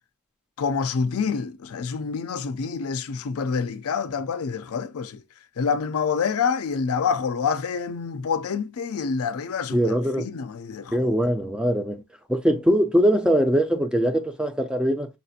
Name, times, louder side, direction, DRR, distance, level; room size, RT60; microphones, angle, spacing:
voice 1, 0.6-5.2 5.6-11.1, left 5 dB, 75° left, 0.4 m, -27 dB
voice 2, 9.7-10.3 10.9-12.0 12.3-15.1, equal, 5° right, 0.3 m, -22 dB
5.7 x 2.5 x 2.7 m
head